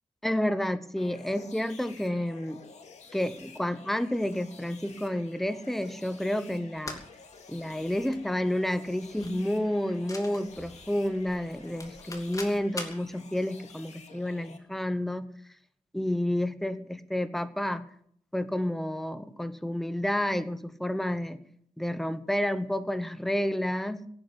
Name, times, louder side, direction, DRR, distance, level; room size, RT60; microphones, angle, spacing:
voice 1, 0.2-2.6 3.1-7.0 7.5-15.3 15.9-17.8 18.3-21.4 21.8-24.1, left 1 dB, ahead, 12 dB, 0.9 m, -30 dB
sound 1, 1.0-14.6, left 5 dB, 55° left, 2.4 m, -51 dB
sound 2, 6.8-13.1, left 2 dB, 25° left, 2.8 m, -44 dB
17.5 x 9.1 x 8.3 m, 0.66 s
wide cardioid pair, 150°, 13 cm